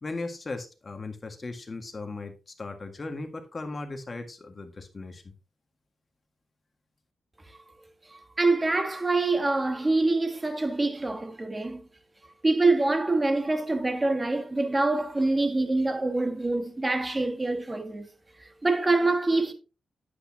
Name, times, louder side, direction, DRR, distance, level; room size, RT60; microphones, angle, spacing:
voice 1, 0.0-5.3, left 3 dB, 30° left, 1.8 m, -37 dB
voice 2, 8.1-11.8 12.4-18.1 18.4-19.5, right 2 dB, 20° right, 1.6 m, -25 dB
9.8 x 8.6 x 2.9 m
cardioid pair, 110°, 0 cm